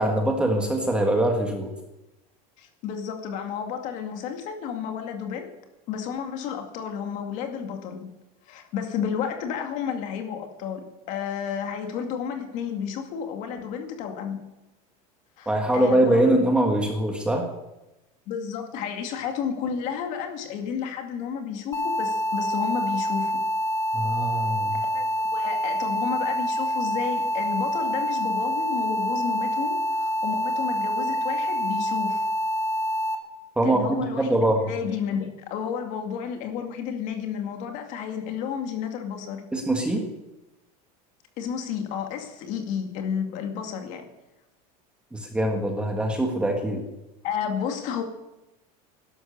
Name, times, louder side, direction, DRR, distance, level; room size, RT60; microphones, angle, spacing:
voice 1, 0.0-1.7 15.4-17.5 23.9-24.8 33.6-34.7 39.5-40.0 45.1-46.8, right 1 dB, 5° right, 2 dB, 1.5 m, -23 dB
voice 2, 2.6-5.5 5.9-8.1 8.5-14.4 15.4-16.4 18.3-23.4 24.7-32.2 33.6-34.4 34.6-39.4 41.4-44.0 47.2-48.0, left 7 dB, 40° left, 5 dB, 2.3 m, -31 dB
sound 1, 21.7-33.2, equal, 15° left, 1.3 m, -26 dB
16.5 x 12.0 x 6.7 m, 0.98 s
cardioid pair, 180°, 19 cm